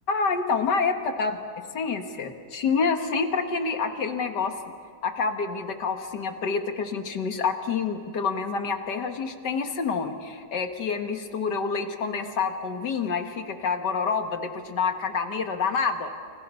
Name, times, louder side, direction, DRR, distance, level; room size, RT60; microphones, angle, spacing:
voice 1, 0.1-1.4 1.7-4.6 5.0-16.1, left 5 dB, 85° left, 6 dB, 2.2 m, -27 dB
29.5 x 28.0 x 5.6 m, 2.3 s
omnidirectional pair, 1.8 m